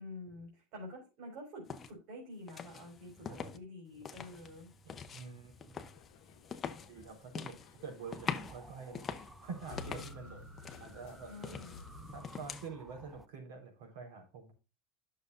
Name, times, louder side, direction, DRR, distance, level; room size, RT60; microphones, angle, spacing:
voice 1, 0.0-4.7 11.3-11.8, left 1 dB, 55° right, -1 dB, 4.0 m, -48 dB
sound 1, 1.7-1.9 2.5-3.6 3.9-10.2 10.6-12.7, left 6 dB, 20° left, 0.8 m, -45 dB
voice 2, 5.1-5.8 6.9-11.6 12.1-14.5, right 5 dB, 85° right, 4 dB, 4.1 m, -47 dB
sound 2, 5.9-12.2, left 5 dB, 70° left, 1.0 m, -54 dB
sound 3, 8.0-13.3, right 2 dB, 10° right, 0.5 m, -56 dB
11.0 x 6.6 x 2.5 m, 0.30 s
supercardioid pair, 155°, 0 cm